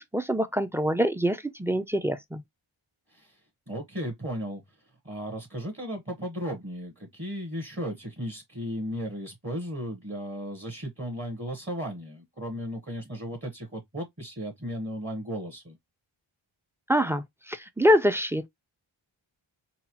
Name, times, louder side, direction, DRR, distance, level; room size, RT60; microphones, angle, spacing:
voice 1, 0.0-2.4 16.9-18.5, equal, 5° right, 0.3 m, -25 dB
voice 2, 3.7-4.6 5.0-15.8, equal, 25° right, 0.9 m, -35 dB
4.0 x 2.0 x 2.8 m
cardioid pair, 40°, 49 cm